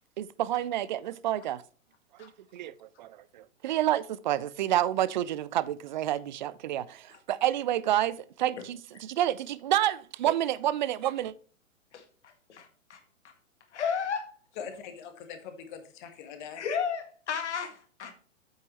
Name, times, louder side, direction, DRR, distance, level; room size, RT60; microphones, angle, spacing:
voice 1, 0.2-1.6 2.2-11.3, right 12 dB, 35° right, 0.5 m, -29 dB
voice 2, 11.9-13.0 13.7-14.3 16.6-18.1, left 6 dB, 60° left, 2.0 m, -33 dB
voice 3, 14.6-16.6, left 7 dB, 35° left, 1.8 m, -42 dB
8.5 x 8.2 x 3.0 m
figure-of-eight pair, 115°, 39 cm